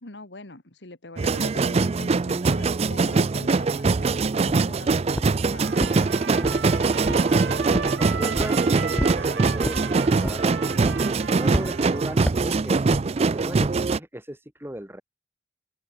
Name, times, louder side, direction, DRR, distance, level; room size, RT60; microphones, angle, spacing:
voice 1, 0.0-5.9, left 2 dB, 80° left, 2.4 m, -43 dB
sound 1, 1.2-14.0, right 4 dB, 35° right, 0.4 m, -23 dB
sound 2, 4.5-4.8 5.2-5.4 5.8-6.7 7.0-7.3 7.7-8.0 8.4-8.6 9.0-9.2 9.6-9.9 10.2-10.5 10.8-11.2 11.5-11.7 12.3-12.5 12.9-13.1 13.6-13.8, equal, 5° left, 1.3 m, -29 dB
Trumpet, 5.6-12.3, right 5 dB, 85° right, 1.0 m, -36 dB
voice 2, 6.3-8.9 9.2-15.0, equal, 15° right, 6.1 m, -38 dB
open air
head